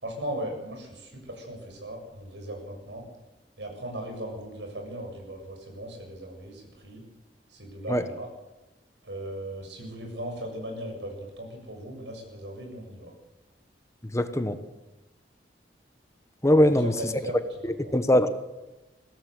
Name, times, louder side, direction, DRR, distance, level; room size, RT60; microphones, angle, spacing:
voice 1, 0.0-3.1 3.6-7.0 7.5-8.3 9.0-13.1 16.6-17.9, right 1 dB, 85° right, 2 dB, 7.1 m, -38 dB
voice 2, 14.1-14.6 16.4-16.9 17.9-18.3, left 1 dB, 15° left, 9 dB, 1.2 m, -21 dB
22.5 x 16.5 x 7.9 m, 1.0 s
head